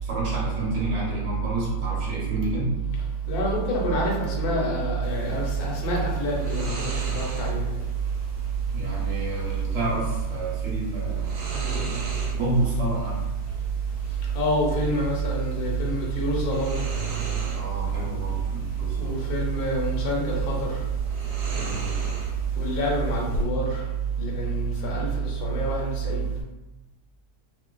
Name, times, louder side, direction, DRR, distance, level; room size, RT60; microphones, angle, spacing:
voice 1, 0.0-2.7 8.7-11.4 12.3-13.2 17.5-19.2 21.6-21.8, right 1 dB, 55° right, -6 dB, 0.9 m, -30 dB
voice 2, 3.3-7.6 14.3-16.8 18.9-20.5 22.6-23.8 24.2-26.3, right 2 dB, 75° left, -2 dB, 1.2 m, -26 dB
sound 1, 5.0-23.4, right 1 dB, 85° right, 1.2 m, -37 dB
2.5 x 2.4 x 2.2 m, 1.0 s
omnidirectional pair, 1.7 m